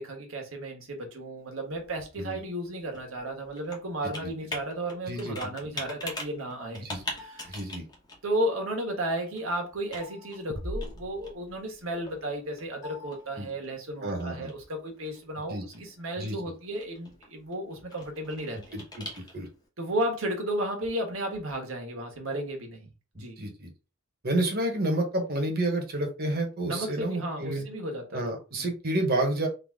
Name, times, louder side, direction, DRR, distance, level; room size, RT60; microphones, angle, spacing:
voice 1, 0.0-6.9 7.2-7.6 8.2-18.6 19.8-23.4 26.7-28.3 28.6-28.7, right 1 dB, 70° right, 1.4 m, -33 dB
Computer keyboard, 1.4-19.7, left 2 dB, 20° left, 1.1 m, -45 dB
voice 2, 5.1-5.4 6.7-7.0 7.5-7.8 13.4-13.5 14.0-14.5 15.5-15.6 16.2-16.4 18.7-19.5 23.1-23.7 24.2-27.7 28.1-29.5, right 1 dB, 45° right, 1.2 m, -30 dB
sound 1, 10.5-12.2, equal, 45° left, 1.0 m, -39 dB
4.0 x 2.8 x 3.6 m
head